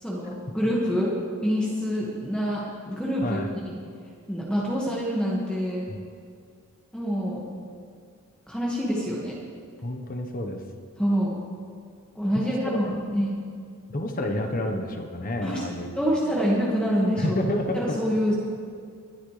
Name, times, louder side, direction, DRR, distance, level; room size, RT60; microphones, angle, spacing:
voice 1, 0.0-1.2 1.4-3.4 3.7-3.8 4.3-5.9 6.9-7.5 8.5-9.3 11.0-11.3 12.2-13.4 15.4-15.6 16.0-17.4 17.7-18.3, equal, 5° left, -5 dB, 1.8 m, -26 dB
voice 2, 9.8-10.6 12.3-12.9 13.9-15.9 16.2-16.4 17.2-18.0, left 1 dB, 40° left, 4 dB, 1.2 m, -29 dB
21.0 x 12.0 x 3.4 m, 2.2 s
head